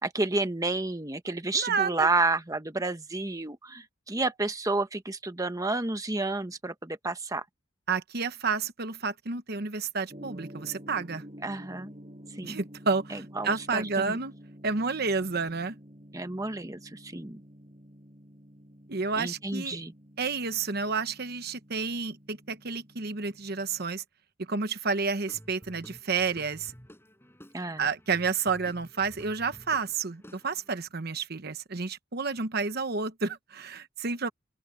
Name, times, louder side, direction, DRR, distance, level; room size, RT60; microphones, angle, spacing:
voice 1, 0.0-7.4 11.4-11.9 12.4-12.5 13.1-14.2 16.1-17.4 19.2-19.9 27.5-27.9, right 2 dB, 15° right, 1.1 m, -30 dB
voice 2, 1.5-2.1 7.9-11.2 12.4-14.3 14.6-15.8 18.9-19.8 20.2-24.0 24.5-26.7 27.8-34.3, right 4 dB, 55° right, 1.0 m, -30 dB
Gong, 10.1-23.9, equal, 35° right, 6.1 m, -50 dB
Guitar / Drum, 25.2-30.8, equal, 10° left, 6.2 m, -51 dB
open air
head